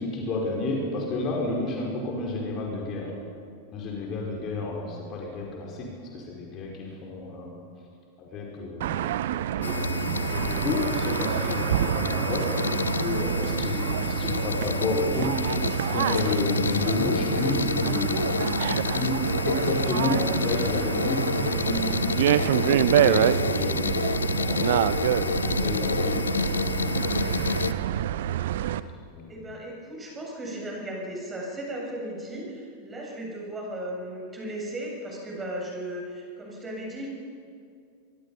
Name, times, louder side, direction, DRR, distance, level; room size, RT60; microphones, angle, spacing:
voice 1, 0.0-3.1 3.7-5.9 6.1-7.6 8.2-9.1 9.6-15.6 15.9-18.5 18.9-19.2 19.5-23.9 24.3-26.2 26.5-27.7 29.1-29.4, left 2 dB, 35° left, -1 dB, 5.1 m, -31 dB
sound 1, 8.8-28.8, right 11 dB, 55° right, 0.8 m, -27 dB
sound 2, 9.6-27.7, left 4 dB, 70° left, 0.7 m, -29 dB
voice 2, 25.3-26.2 29.3-37.1, right 1 dB, 15° right, -2 dB, 7.3 m, -36 dB
24.5 x 24.0 x 5.7 m, 2.3 s
figure-of-eight pair, 90°, 0 cm